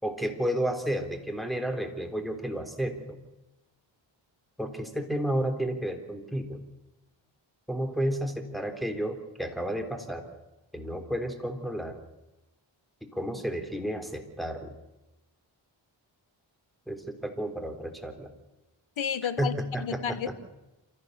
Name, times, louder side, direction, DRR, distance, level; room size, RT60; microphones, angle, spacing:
voice 1, 0.0-3.2 4.6-6.6 7.7-10.3 10.7-12.0 13.1-14.7 16.9-18.3 19.4-20.0 20.3-20.4, right 1 dB, ahead, 3.7 m, -31 dB
voice 2, 19.0-20.3, left 8 dB, 75° left, 1.3 m, -32 dB
27.5 x 14.5 x 6.8 m
cardioid pair, 55°, 48 cm